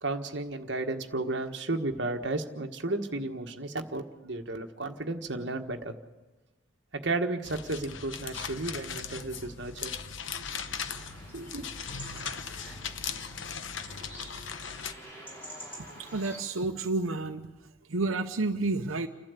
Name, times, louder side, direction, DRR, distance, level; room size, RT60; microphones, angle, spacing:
voice 1, 0.0-5.9 6.9-9.9 10.3-10.4 11.3-11.7 13.0-13.2 14.0-14.1, right 2 dB, 55° right, 4 dB, 1.5 m, -33 dB
sound 1, 7.4-14.9, left 6 dB, 70° left, 1.0 m, -38 dB
sound 2, 10.5-16.4, right 1 dB, 10° left, 5.3 m, -47 dB
voice 2, 16.0-17.5 17.9-19.1, right 3 dB, 85° right, 5 dB, 0.9 m, -30 dB
29.5 x 12.0 x 8.3 m, 1.1 s
head